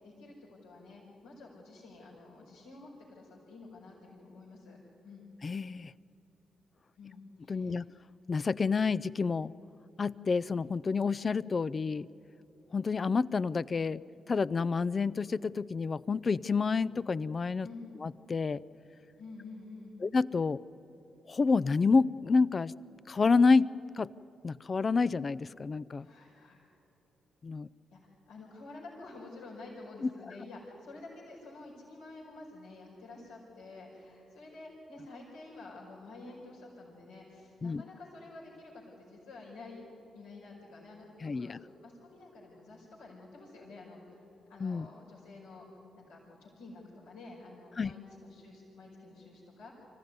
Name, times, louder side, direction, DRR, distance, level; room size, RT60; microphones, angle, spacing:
voice 1, 0.0-4.8 5.0-5.3 7.0-7.8 17.6-17.9 19.2-20.0 26.0-26.6 27.9-39.9 40.1-41.1 41.3-41.5 41.8-44.2 44.5-45.6 45.9-49.7, left 3 dB, 85° left, -4 dB, 5.1 m, -49 dB
voice 2, 5.4-5.9 7.5-7.8 8.3-9.5 10.0-12.1 12.7-14.0 14.3-17.7 18.0-18.6 20.0-20.6 21.3-22.7 23.1-23.7 24.0-24.1 24.4-26.1 27.4-27.7 30.0-30.1 37.6-37.8 41.2-41.6 44.6-44.9 47.8-47.9, left 4 dB, 45° left, 18 dB, 0.5 m, -28 dB
25.0 x 15.0 x 9.6 m, 2.9 s
hypercardioid pair, 45°, 0 cm